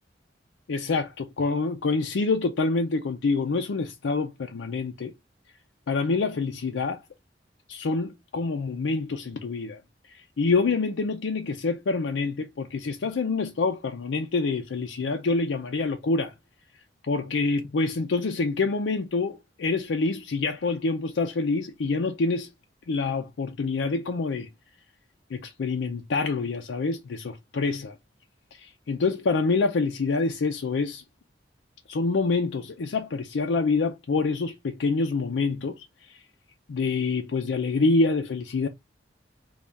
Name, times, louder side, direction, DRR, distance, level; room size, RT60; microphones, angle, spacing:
voice 1, 0.7-5.1 5.9-7.0 7.7-9.8 10.1-16.3 17.0-22.5 22.9-24.5 25.3-28.0 28.5-31.0 31.9-36.2 36.7-38.7, left 3 dB, 90° left, 0.5 m, -26 dB
3.4 x 2.3 x 3.9 m
head